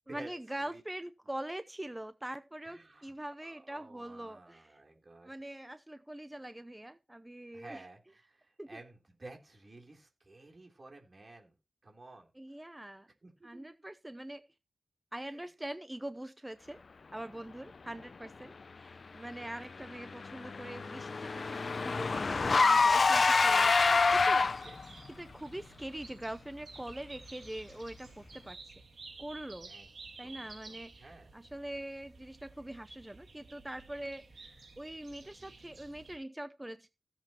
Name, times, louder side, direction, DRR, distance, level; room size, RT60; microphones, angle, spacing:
voice 1, 0.1-4.7 5.2-7.8 8.6-8.8 12.4-13.1 13.4-14.4 15.1-16.8 17.1-24.4 25.2-28.6 29.2-29.7 30.2-36.9, right 1 dB, 10° right, 0.6 m, -43 dB
voice 2, 2.6-3.1 3.4-5.3 7.5-11.6 11.8-12.3 13.2-13.7 15.2-15.5 19.4-19.6 24.5-24.8 29.7-29.9 30.2-31.3 35.2-35.5, right 2 dB, 40° right, 3.5 m, -53 dB
Car / Engine, 19.8-24.9, left 4 dB, 50° left, 0.5 m, -26 dB
sound 1, 23.8-36.2, right 3 dB, 70° right, 2.7 m, -53 dB
16.0 x 7.5 x 3.0 m
wide cardioid pair, 120°, 0 cm